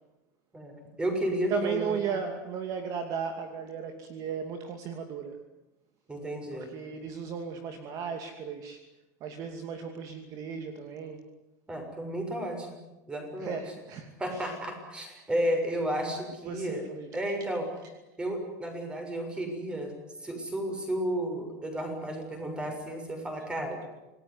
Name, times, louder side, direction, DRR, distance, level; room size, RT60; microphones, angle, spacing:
voice 1, 0.5-2.0 6.1-6.7 11.7-12.7 13.1-13.6 14.2-16.8 17.1-17.7 18.2-19.9 20.2-23.8, right 1 dB, 10° right, 4 dB, 6.6 m, -32 dB
voice 2, 1.5-5.4 6.5-8.8 9.2-11.2 13.4-14.5 16.4-17.5, right 6 dB, 40° right, 5 dB, 2.6 m, -36 dB
27.5 x 19.0 x 9.8 m, 1.0 s
supercardioid pair, 155°, 9 cm